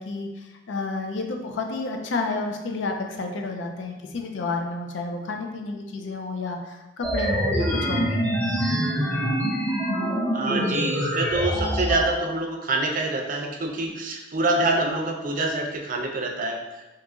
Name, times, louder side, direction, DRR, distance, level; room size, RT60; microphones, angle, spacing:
voice 1, 0.0-8.2, left 3 dB, 90° left, 3 dB, 0.4 m, -30 dB
sound 1, 7.0-12.0, equal, 10° left, 0.7 m, -25 dB
voice 2, 10.3-16.9, right 2 dB, 50° right, 2 dB, 0.4 m, -26 dB
2.8 x 2.4 x 3.5 m, 1.1 s
head